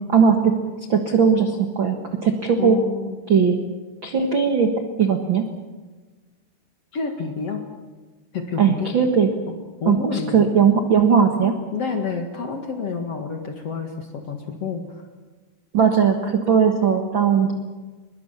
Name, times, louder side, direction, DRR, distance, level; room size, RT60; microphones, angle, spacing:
voice 1, 0.1-0.5 0.9-2.8 3.3-3.6 4.0-4.7 5.0-5.4 8.6-9.3 9.9-11.5 15.7-17.5, right 6 dB, 65° right, 4 dB, 1.2 m, -18 dB
voice 2, 2.6-3.2 6.9-7.6 8.3-8.9 9.5-9.6 9.8-10.5 11.7-15.0, left 5 dB, 50° left, 4 dB, 2.2 m, -29 dB
23.5 x 22.0 x 7.3 m, 1.3 s
omnidirectional pair, 4.9 m